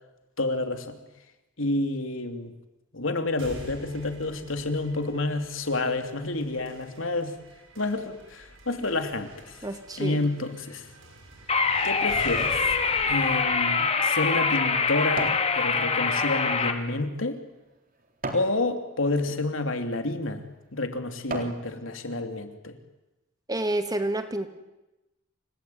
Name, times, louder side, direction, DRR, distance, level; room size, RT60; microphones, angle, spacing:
voice 1, 0.4-1.0 1.6-2.5 2.9-7.3 7.8-9.6 10.0-10.8 11.8-12.7 13.1-17.4 18.3-20.4 20.7-22.8, left 2 dB, 85° left, 6 dB, 3.2 m, -29 dB
sound 1, 3.4-15.3, right 1 dB, 85° right, 7.7 m, -47 dB
voice 2, 9.6-10.3 23.5-24.5, right 1 dB, 20° right, 8 dB, 2.2 m, -29 dB
sound 2, 11.5-16.7, left 5 dB, 30° left, 2.6 m, -24 dB
sound 3, 13.6-15.5 16.0-18.6 19.2-19.4 20.1-20.3 20.8-21.6 22.1-22.2, right 2 dB, 45° right, 4.0 m, -38 dB
29.0 x 19.0 x 9.5 m, 0.99 s
head